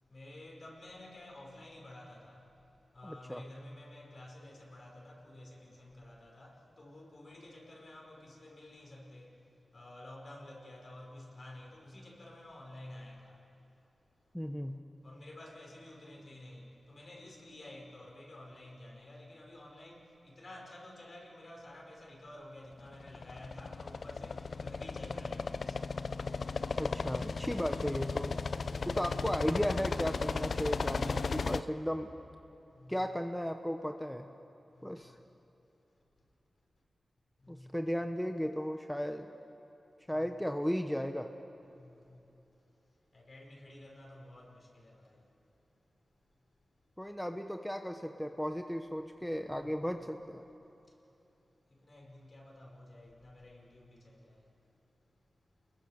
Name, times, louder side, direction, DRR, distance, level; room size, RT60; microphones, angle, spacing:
voice 1, 0.1-2.4 2.9-9.3 9.7-13.4 15.0-25.7 32.8-33.0 34.8-34.9 37.4-37.7 40.1-40.3 41.7-42.2 43.1-45.2 49.6-49.7 51.9-54.4, left 1 dB, 50° left, -1 dB, 5.3 m, -51 dB
voice 2, 3.0-3.4 14.3-14.9 26.8-28.4 28.8-32.1 32.9-34.3 34.8-35.2 37.5-39.3 40.1-41.3 47.0-50.4, equal, 5° left, 5 dB, 1.0 m, -35 dB
sound 1, 22.9-31.6, left 4 dB, 70° left, 0.6 m, -35 dB
29.0 x 21.5 x 6.6 m, 3.0 s
wide cardioid pair, 70°, 0 cm